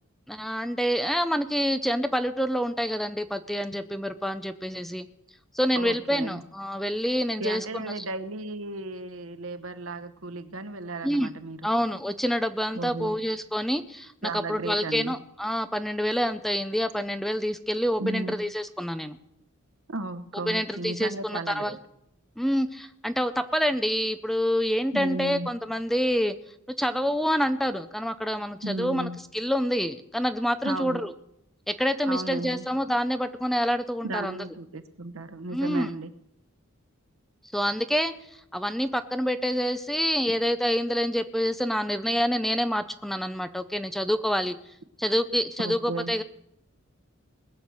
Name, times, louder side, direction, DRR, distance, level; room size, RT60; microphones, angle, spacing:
voice 1, 0.3-5.1 5.5-7.9 11.0-11.3 11.6-19.2 20.5-21.8 22.4-26.4 26.8-29.1 29.3-31.1 31.7-34.4 35.5-35.9 37.5-38.1 38.5-44.6 45.0-46.2, equal, ahead, 10 dB, 0.5 m, -27 dB
voice 2, 5.7-6.4 7.4-11.7 12.7-13.2 14.2-15.1 18.0-18.4 19.9-21.8 24.9-25.5 28.6-29.2 30.6-31.0 32.0-32.7 34.0-36.1 45.6-46.1, right 2 dB, 80° right, 11 dB, 1.0 m, -34 dB
20.5 x 7.1 x 6.4 m, 0.78 s
head